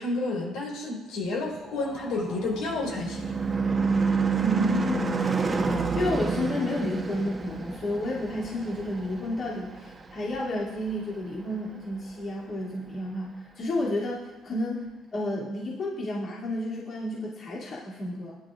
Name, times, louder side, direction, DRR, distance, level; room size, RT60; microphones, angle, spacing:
voice 1, 0.0-3.3, left 2 dB, 80° left, -2 dB, 4.4 m, -30 dB
sound 1, 1.2-3.1, left 1 dB, 25° left, 4.1 m, -47 dB
Car passing by / Truck / Engine, 1.9-10.6, right 4 dB, 25° right, 1.1 m, -29 dB
voice 2, 4.3-5.6 5.9-14.8 15.1-18.4, left 1 dB, 45° left, -7 dB, 2.9 m, -31 dB
20.0 x 11.0 x 2.6 m, 1.1 s
cardioid pair, 135°, 0 cm